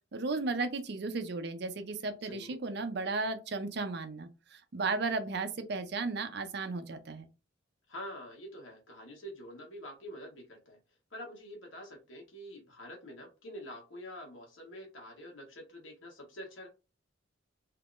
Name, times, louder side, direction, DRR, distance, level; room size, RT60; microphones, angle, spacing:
voice 1, 0.1-7.3, right 3 dB, 55° right, 0.5 m, -35 dB
voice 2, 2.2-2.6 7.9-10.8 11.1-16.7, equal, 80° left, 1.3 m, -46 dB
3.6 x 2.8 x 2.4 m
head